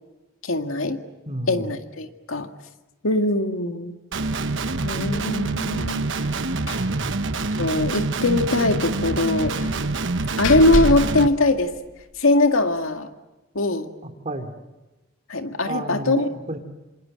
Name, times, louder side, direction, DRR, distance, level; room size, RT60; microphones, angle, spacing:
voice 1, 0.4-1.0 1.5-2.5 3.0-3.9 4.8-6.0 7.6-9.6 10.4-11.7 12.2-13.1 13.5-13.9 15.3-16.3, left 2 dB, 90° left, 6 dB, 2.1 m, -21 dB
voice 2, 1.3-1.7 6.7-7.3 14.0-14.5 15.6-16.6, right 1 dB, 35° right, 5 dB, 3.0 m, -32 dB
Guitar, 4.1-11.3, right 3 dB, 65° right, 1.2 m, -26 dB
Slam, 6.7-7.0 7.3-7.4 7.7-7.8 9.6-12.2, left 1 dB, 70° left, 2.7 m, -29 dB
27.5 x 26.5 x 7.7 m, 1.1 s
head